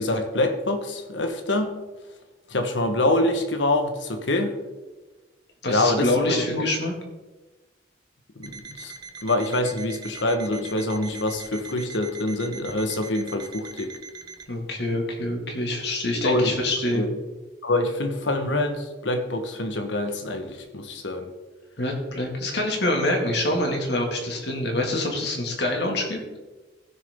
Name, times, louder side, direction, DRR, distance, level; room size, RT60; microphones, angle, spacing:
voice 1, 0.0-1.8 2.5-4.6 5.7-6.6 8.3-8.9 9.2-13.9 16.2-16.6 16.9-17.1 17.6-21.3, left 1 dB, 75° left, 6 dB, 1.3 m, -25 dB
voice 2, 5.6-6.9 14.5-17.0 21.8-26.2, left 1 dB, 60° left, 1 dB, 2.2 m, -25 dB
Alarm, 8.4-14.5, right 4 dB, 20° right, 0.7 m, -42 dB
15.0 x 6.6 x 3.7 m, 1.2 s
head